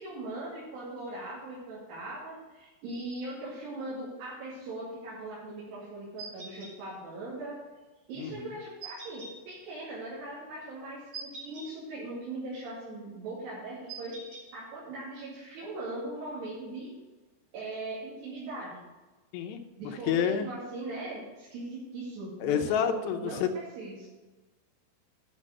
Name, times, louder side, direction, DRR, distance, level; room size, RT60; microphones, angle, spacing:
voice 1, 0.0-7.6 8.1-14.2 14.5-16.9 17.5-18.8 19.8-24.1, right 2 dB, 80° right, -8 dB, 4.6 m, -40 dB
sound 1, 6.2-6.7 8.8-9.3 11.1-11.7 13.9-14.4, right 4 dB, 45° right, 5.0 m, -42 dB
voice 2, 8.2-8.5 19.3-19.6 20.1-20.5 22.4-23.5, left 8 dB, 90° left, 5 dB, 3.0 m, -29 dB
10.5 x 6.3 x 6.4 m, 1.2 s
omnidirectional pair, 4.7 m